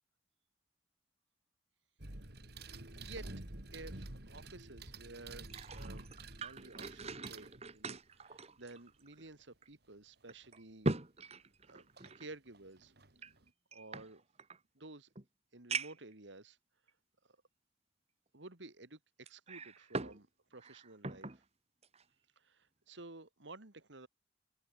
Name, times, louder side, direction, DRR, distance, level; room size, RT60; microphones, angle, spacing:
sound 1, 2.0-8.0 10.4-10.5 12.0-12.2 12.5-13.5, right 2 dB, 60° right, 3.2 m, -49 dB
voice 1, 3.0-6.1 6.4-10.9 11.7-11.9 12.2-12.9 13.7-14.2 14.7-15.1 15.5-16.6 17.2-17.4 18.3-21.4 22.4-24.1, right 2 dB, 75° right, 2.6 m, -53 dB
sound 2, 5.3-9.3 9.6-9.7 10.3-12.3 13.2-14.6 15.1-15.2 15.7-16.1 16.9-17.0 19.3-20.2 20.5-21.4 21.8-22.0, right 3 dB, 35° right, 1.8 m, -41 dB
head